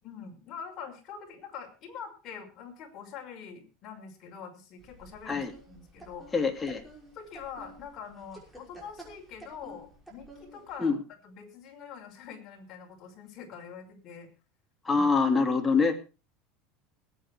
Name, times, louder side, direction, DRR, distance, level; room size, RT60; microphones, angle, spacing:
voice 1, 0.0-6.4 7.1-14.3 14.9-15.1, left 6 dB, 40° left, 2 dB, 5.7 m, -44 dB
sound 1, 4.8-10.7, right 2 dB, 5° right, 5.8 m, -52 dB
voice 2, 6.3-6.8 10.8-11.0 14.8-16.0, left 4 dB, 15° left, 4 dB, 2.5 m, -25 dB
20.0 x 9.2 x 4.7 m, 0.33 s
supercardioid pair, 130°, 0 cm